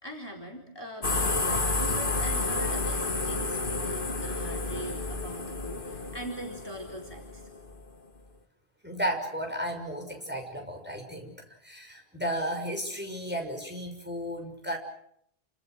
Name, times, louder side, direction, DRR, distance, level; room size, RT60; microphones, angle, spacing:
voice 1, 0.0-7.5, equal, 20° left, 1 dB, 4.3 m, -41 dB
sound 1, 1.0-7.8, left 3 dB, 50° left, 2.2 m, -30 dB
voice 2, 8.8-14.8, equal, 10° right, 2 dB, 6.5 m, -34 dB
29.5 x 26.5 x 6.4 m, 0.70 s
omnidirectional pair, 1.1 m